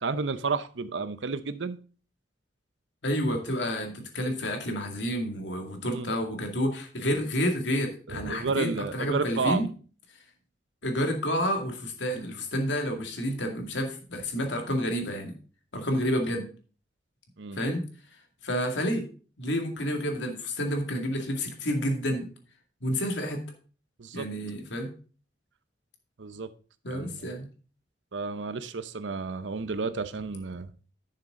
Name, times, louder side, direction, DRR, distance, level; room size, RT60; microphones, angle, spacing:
voice 1, 0.0-1.8 5.8-6.1 8.1-9.6 17.4-17.6 24.0-24.3 26.2-26.5 26.9-27.3 28.1-30.7, right 4 dB, 90° right, 13 dB, 0.7 m, -31 dB
voice 2, 3.0-9.7 10.8-15.3 15.7-16.4 17.5-17.8 18.4-19.1 19.4-22.3 22.8-23.4 24.1-24.9 26.8-27.5, equal, 80° left, 4 dB, 2.3 m, -29 dB
10.5 x 6.7 x 3.7 m, 0.38 s
head